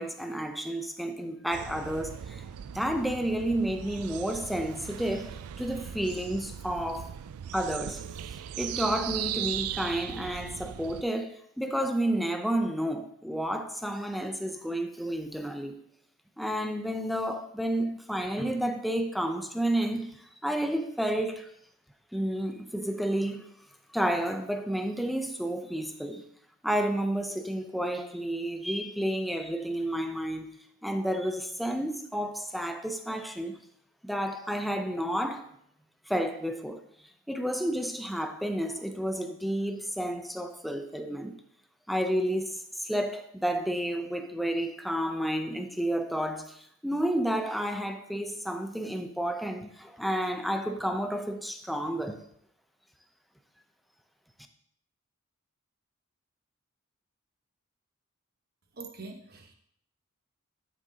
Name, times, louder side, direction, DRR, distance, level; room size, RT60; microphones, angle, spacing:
voice 1, 0.0-2.4 2.7-7.1 7.5-8.0 8.6-15.8 16.4-20.2 20.4-21.5 22.1-23.5 23.9-26.2 26.6-30.5 30.8-33.6 34.0-35.5 36.1-36.8 37.3-41.4 41.9-52.2, right 1 dB, ahead, 0.6 m, -31 dB
sound 1, 1.5-11.0, right 10 dB, 85° right, 0.4 m, -38 dB
voice 2, 58.8-59.5, right 3 dB, 45° right, 1.1 m, -43 dB
11.5 x 6.2 x 2.8 m
head